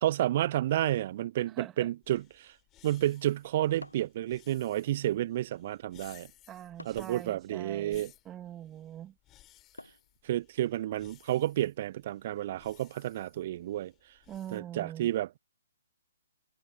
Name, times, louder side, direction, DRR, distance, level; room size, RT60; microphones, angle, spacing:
voice 1, 0.0-2.5 2.8-6.3 6.9-8.1 10.2-13.9 14.5-15.4, right 13 dB, 40° right, 0.4 m, -31 dB
sound 1, 0.8-1.7 3.8-4.3 6.8-7.2 9.8-10.2, left 1 dB, 85° left, 1.7 m, -49 dB
voice 2, 1.5-1.9 6.5-9.1 14.3-15.1, right 11 dB, 15° right, 2.5 m, -43 dB
sound 2, 2.0-14.6, left 15 dB, 20° left, 7.9 m, -60 dB
figure-of-eight pair, 130°, 0 cm